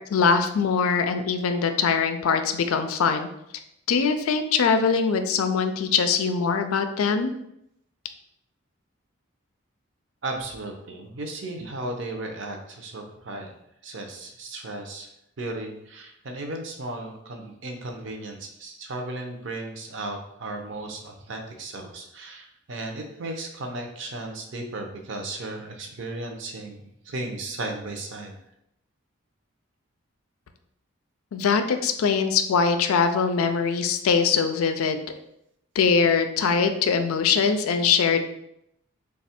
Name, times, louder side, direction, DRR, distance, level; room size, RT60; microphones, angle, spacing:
voice 1, 0.0-3.3 3.9-7.3 31.3-35.1 35.8-38.2, left 5 dB, 90° left, 8 dB, 0.4 m, -22 dB
voice 2, 10.2-13.5 13.8-15.1 15.4-28.3, right 2 dB, 60° right, 3 dB, 0.6 m, -35 dB
3.2 x 2.3 x 4.3 m, 0.78 s
head